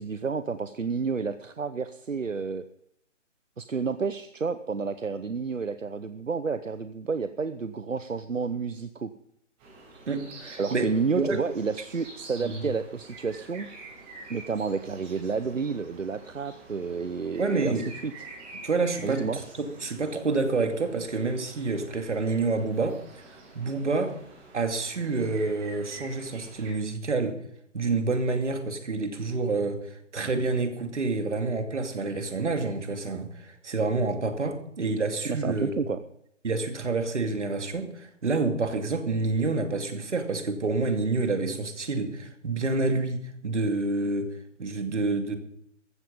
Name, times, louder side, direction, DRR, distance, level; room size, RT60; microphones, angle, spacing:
voice 1, 0.0-2.6 3.6-9.1 10.6-13.7 14.3-18.1 19.0-19.4 35.3-36.0, right 5 dB, 90° right, 12 dB, 0.9 m, -30 dB
sound 1, 9.6-26.7, right 2 dB, 20° right, 6.5 m, -48 dB
voice 2, 10.1-10.9 11.2-11.4 12.4-12.6 17.4-17.8 18.6-23.0 23.5-24.1 24.5-27.4 27.7-29.8 30.1-35.8 36.4-44.3 44.6-45.4, right 3 dB, 70° right, 6 dB, 2.6 m, -28 dB
14.5 x 13.5 x 5.4 m, 0.71 s
figure-of-eight pair, 140°, 37 cm